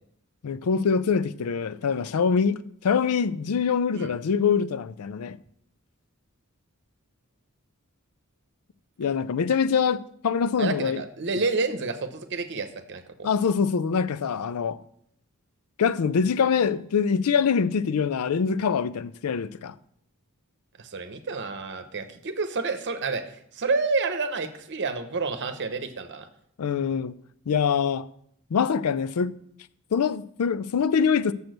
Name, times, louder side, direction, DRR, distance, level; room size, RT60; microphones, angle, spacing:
voice 1, 0.4-5.4 9.0-11.0 13.2-14.8 15.8-19.7 26.6-27.1 27.5-28.1 28.5-29.4 29.9-31.3, left 6 dB, 85° left, 0.4 m, -24 dB
voice 2, 10.6-13.3 20.8-26.3, right 4 dB, 55° right, 0.9 m, -29 dB
7.0 x 6.1 x 6.5 m
head